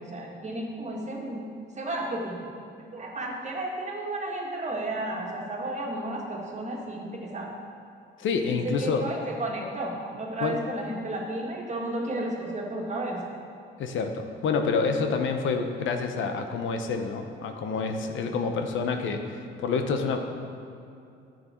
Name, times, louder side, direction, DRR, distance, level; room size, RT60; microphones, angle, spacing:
voice 1, 0.0-1.5 1.8-2.4 2.8-7.5 8.5-13.2, right 1 dB, 35° right, -1 dB, 1.9 m, -33 dB
voice 2, 8.2-9.1 10.4-10.6 13.8-20.2, left 5 dB, 75° left, 5 dB, 0.9 m, -28 dB
11.0 x 7.6 x 4.4 m, 2.6 s
cardioid pair, 90°, 20 cm